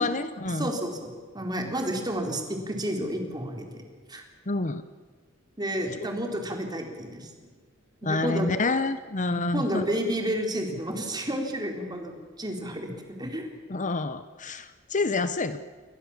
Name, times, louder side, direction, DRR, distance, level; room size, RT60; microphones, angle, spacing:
voice 1, 0.0-0.7 4.5-4.8 8.0-9.8 13.7-15.6, left 3 dB, 40° left, 12 dB, 0.9 m, -28 dB
voice 2, 0.6-3.8 4.1-4.2 5.6-7.3 8.0-8.5 9.3-13.5, equal, 20° right, 3 dB, 4.1 m, -31 dB
29.0 x 22.5 x 7.4 m, 1.5 s
head